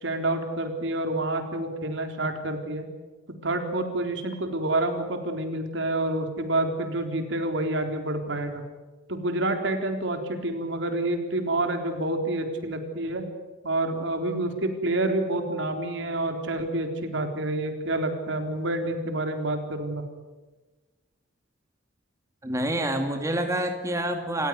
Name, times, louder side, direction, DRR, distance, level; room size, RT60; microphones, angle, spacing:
voice 1, 0.0-2.9 3.4-8.6 9.1-13.2 13.6-20.0, right 2 dB, 70° right, 5 dB, 3.9 m, -28 dB
voice 2, 22.4-24.5, right 1 dB, 15° right, 4 dB, 2.2 m, -27 dB
29.0 x 16.0 x 9.6 m, 1.2 s
head